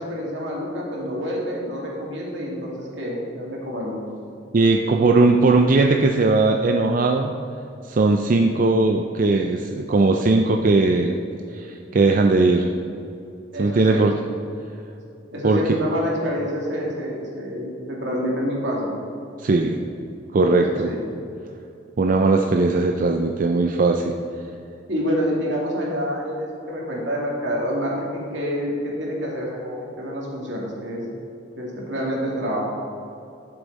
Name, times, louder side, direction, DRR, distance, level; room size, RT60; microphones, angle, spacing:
voice 1, 0.0-4.0 13.5-14.0 15.3-18.9 20.5-21.0 24.9-31.1 31.6-32.7, equal, 75° right, -3 dB, 2.3 m, -27 dB
voice 2, 4.5-7.3 7.9-11.2 11.5-12.7 13.6-14.1 15.4-15.6 19.4-19.8 20.3-20.9 22.0-24.1, right 3 dB, 45° right, 3 dB, 0.4 m, -18 dB
11.0 x 7.0 x 4.1 m, 2.7 s
head